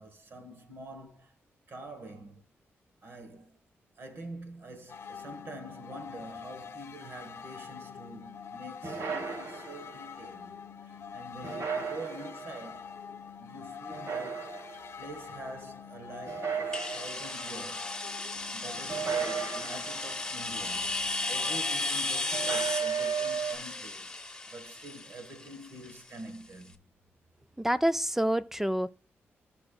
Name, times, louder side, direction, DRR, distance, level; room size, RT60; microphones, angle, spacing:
voice 1, 0.0-1.4 1.7-2.4 3.0-3.6 4.0-12.9 13.4-14.5 15.0-18.0 18.5-24.2 24.5-26.8, right 2 dB, 55° right, 1.4 m, -46 dB
sound 1, 4.9-22.6, left 6 dB, 60° left, 0.7 m, -45 dB
sound 2, 8.8-10.0 11.4-12.6 13.9-14.9 16.3-17.4 18.9-20.2 22.3-23.5, right 6 dB, 75° right, 1.3 m, -34 dB
sound 3, 16.7-26.4, left 2 dB, 15° left, 0.9 m, -35 dB
voice 2, 27.6-28.9, equal, 5° right, 0.3 m, -27 dB
15.0 x 5.3 x 2.3 m
cardioid pair, 85°, 5 cm